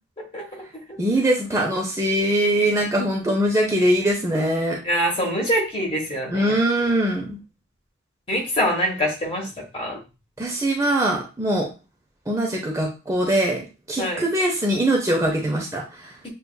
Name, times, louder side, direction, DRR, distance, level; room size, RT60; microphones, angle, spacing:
voice 1, 0.3-1.0 4.8-6.6 8.3-10.0 14.0-14.2, equal, 30° left, 0 dB, 1.2 m, -25 dB
voice 2, 1.0-4.8 6.3-7.4 10.4-11.7 12.3-13.6 13.9-15.8, right 1 dB, 15° right, -1 dB, 0.6 m, -22 dB
6.9 x 2.4 x 2.3 m, 0.30 s
head